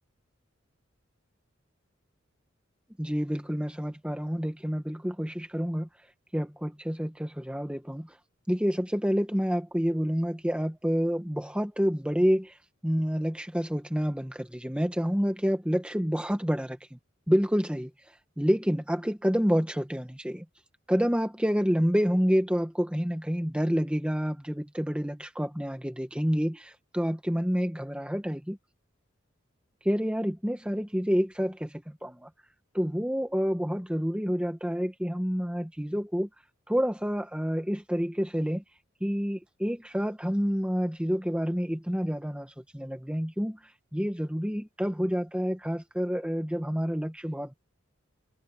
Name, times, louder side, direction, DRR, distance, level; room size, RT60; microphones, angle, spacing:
voice 1, 3.0-5.9 6.3-8.2 8.5-12.6 12.8-17.0 17.3-17.9 18.4-20.4 20.9-28.6 29.8-32.3 32.7-36.3 36.7-38.6 39.0-43.6 43.9-47.5, equal, 5° right, 1.3 m, -28 dB
open air
head